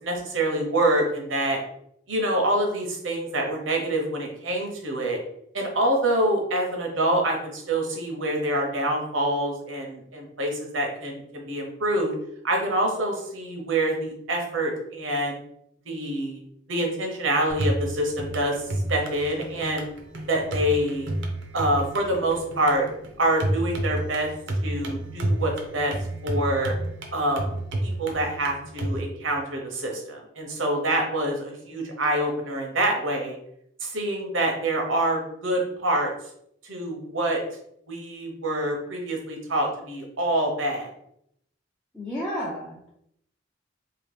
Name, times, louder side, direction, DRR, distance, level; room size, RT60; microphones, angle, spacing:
voice 1, 0.0-1.6 2.1-5.2 5.5-12.1 12.4-15.4 15.9-16.4 16.7-19.9 20.3-21.1 21.5-22.9 23.2-24.3 24.6-25.9 26.2-26.7 27.1-27.5 27.8-33.4 33.8-36.1 36.6-37.4 37.9-40.9, right 1 dB, 85° right, 1 dB, 0.9 m, -26 dB
sound 1, 17.5-29.0, right 1 dB, 65° right, 0.6 m, -31 dB
voice 2, 41.9-42.9, equal, 5° left, -7 dB, 0.5 m, -32 dB
2.9 x 2.8 x 3.3 m, 0.73 s
head